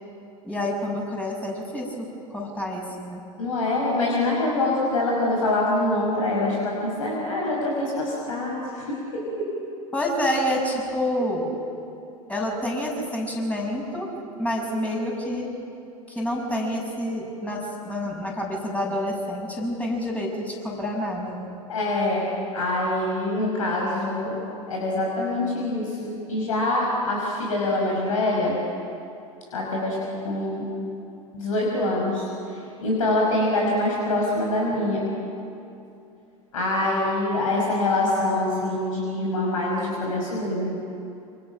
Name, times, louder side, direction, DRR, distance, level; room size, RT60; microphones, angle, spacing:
voice 1, 0.4-3.2 9.9-11.5 12.3-15.5 16.1-21.5, left 1 dB, 5° left, -1 dB, 6.8 m, -28 dB
voice 2, 3.4-9.3 11.2-11.3 21.7-22.3 22.5-24.4 24.7-28.6 29.5-30.0 30.2-30.7 31.3-32.2 32.8-35.1 36.5-40.7, left 2 dB, 65° left, -2 dB, 5.6 m, -25 dB
28.5 x 26.5 x 6.1 m, 2.7 s
figure-of-eight pair, 85°, 19 cm